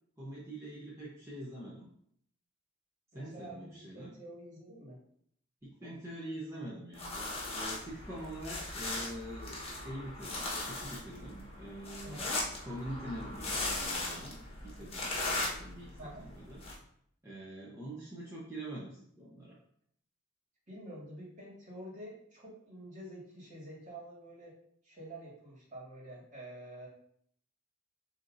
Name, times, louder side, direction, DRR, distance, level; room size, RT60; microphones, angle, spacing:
voice 1, 0.2-1.9 3.1-4.1 5.6-12.2 12.7-16.6 17.2-19.6, right 1 dB, 15° right, -7 dB, 0.8 m, -45 dB
voice 2, 3.1-5.0 12.0-12.3 16.0-16.2 20.7-24.6 24.8-26.9, right 1 dB, 40° right, -5 dB, 1.8 m, -48 dB
sound 1, 6.9-16.7, left 2 dB, 30° left, 1.2 m, -38 dB
6.8 x 2.9 x 2.6 m, 0.68 s
head